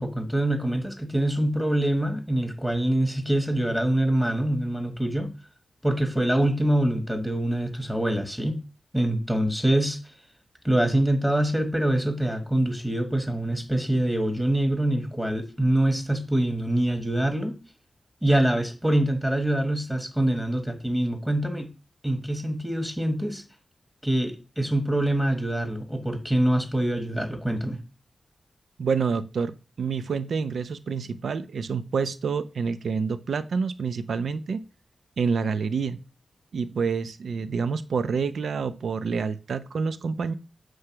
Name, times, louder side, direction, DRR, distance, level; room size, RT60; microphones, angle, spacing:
voice 1, 0.0-5.3 5.8-8.6 8.9-10.0 10.6-17.6 18.2-21.7 22.0-23.4 24.0-27.8, right 1 dB, 5° right, 1.2 m, -25 dB
voice 2, 28.8-34.6 35.2-36.0 36.5-40.3, right 5 dB, 80° right, 0.5 m, -28 dB
7.8 x 3.3 x 5.8 m
wide cardioid pair, 120°, 0 cm